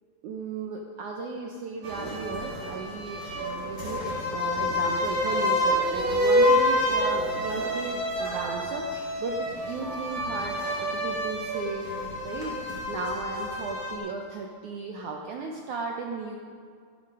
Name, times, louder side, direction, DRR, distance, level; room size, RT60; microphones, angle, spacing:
voice 1, 0.2-11.9 12.2-16.3, right 4 dB, 80° right, 1 dB, 1.7 m, -35 dB
sound 1, 1.8-14.0, left 1 dB, 30° right, 3.9 m, -28 dB
14.5 x 11.0 x 5.4 m, 2.1 s
omnidirectional pair, 4.7 m